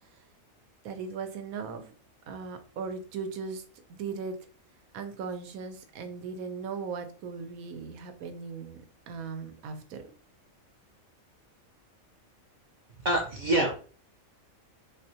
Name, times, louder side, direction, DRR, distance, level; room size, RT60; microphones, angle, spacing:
voice 1, 0.8-1.9 2.3-3.6 3.9-4.4 4.9-10.1, right 5 dB, 85° right, 7 dB, 1.0 m, -38 dB
voice 2, 13.0-13.7, right 1 dB, 60° right, -1 dB, 0.5 m, -25 dB
3.6 x 2.2 x 2.6 m, 0.39 s
omnidirectional pair, 1.4 m